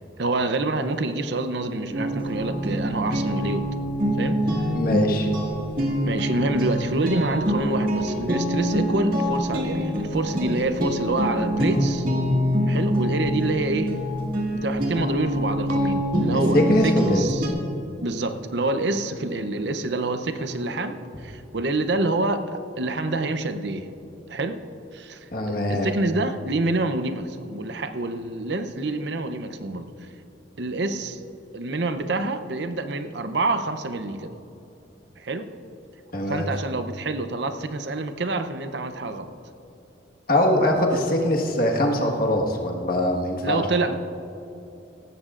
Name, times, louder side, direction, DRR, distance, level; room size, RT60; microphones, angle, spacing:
voice 1, 0.2-3.6 4.1-4.4 6.0-12.1 12.7-13.9 14.5-17.5 18.0-23.9 24.3-24.6 24.9-29.9 30.6-31.2 31.5-34.3 35.2-35.5 36.3-39.3 43.4-43.9, right 2 dB, 70° right, 9 dB, 0.7 m, -27 dB
sound 1, 1.9-17.5, equal, 50° right, 1.9 m, -25 dB
voice 2, 4.7-5.3 16.5-17.3 25.3-25.9 36.1-36.5 40.3-43.6, left 1 dB, 50° left, 0 dB, 1.6 m, -22 dB
17.5 x 15.0 x 2.5 m, 2.9 s
head